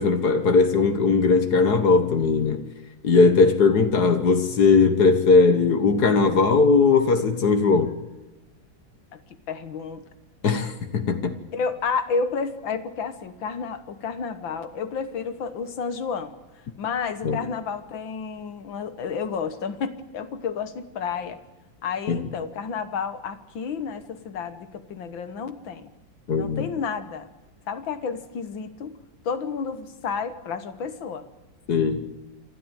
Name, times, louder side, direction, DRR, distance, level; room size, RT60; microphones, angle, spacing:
voice 1, 0.0-2.7 3.0-8.0 10.4-11.3 17.2-17.4 22.1-22.2 26.3-26.6 31.7-32.1, left 4 dB, 55° left, 1.8 m, -19 dB
voice 2, 9.5-10.1 11.5-16.3 16.8-21.4 21.8-25.9 26.4-27.3 27.7-29.0 29.3-31.3, left 5 dB, 80° left, 2.0 m, -31 dB
27.5 x 12.5 x 9.0 m
omnidirectional pair, 2.1 m